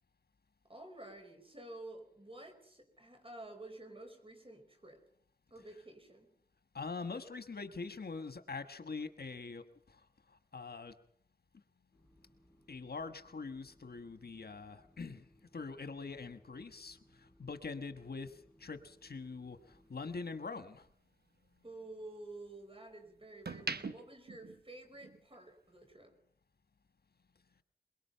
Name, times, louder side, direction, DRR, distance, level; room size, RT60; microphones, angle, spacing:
voice 1, 0.7-5.0 5.5-6.3 21.6-26.1, right 2 dB, 35° right, 4.8 m, -51 dB
voice 2, 6.7-10.9 12.7-20.9, left 4 dB, 85° left, 1.3 m, -44 dB
sound 1, 11.9-19.9, equal, 5° left, 7.3 m, -67 dB
sound 2, 18.6-20.9 21.3-22.8 23.2-25.3 25.6-25.9, right 4 dB, 90° right, 1.0 m, -45 dB
23.0 x 22.0 x 5.6 m
wide cardioid pair, 55°, 16 cm